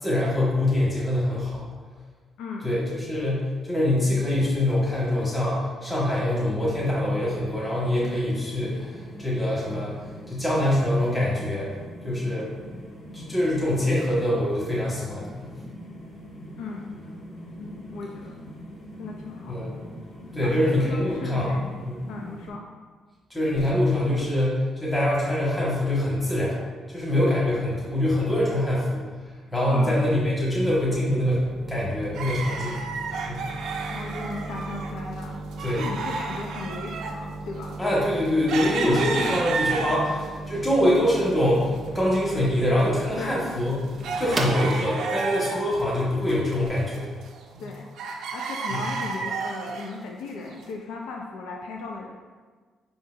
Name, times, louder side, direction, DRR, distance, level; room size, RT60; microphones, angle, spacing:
voice 1, 0.0-1.6 2.6-9.9 10.3-11.7 12.0-12.5 13.1-15.5 19.5-19.7 20.3-21.5 21.8-22.0 23.3-26.6 26.9-29.0 29.5-32.8 33.3-33.5 35.6-35.9 37.8-43.8 44.2-47.1 47.5-47.6 48.7-48.8, left 1 dB, 20° left, -6 dB, 1.3 m, -24 dB
sound 1, 6.6-22.5, equal, 60° left, 1.5 m, -43 dB
voice 2, 16.6-17.0 17.6-18.4 19.0-19.6 20.4-21.7 22.1-22.6 29.7-30.1 33.9-35.4 35.8-37.8 43.2-43.5 44.2-44.5 47.6-47.9 48.3-52.1, left 3 dB, 90° left, 0 dB, 0.4 m, -37 dB
sound 2, 29.3-46.9, right 2 dB, 25° right, 0.6 m, -38 dB
sound 3, 32.1-34.9 35.2-40.3 40.8-41.6 41.9-42.0 42.6-45.8 46.1-47.7 48.0-49.9 50.6-50.7, right 4 dB, 80° right, 0.5 m, -32 dB
4.7 x 3.8 x 2.5 m, 1.5 s
cardioid pair, 90°, 0 cm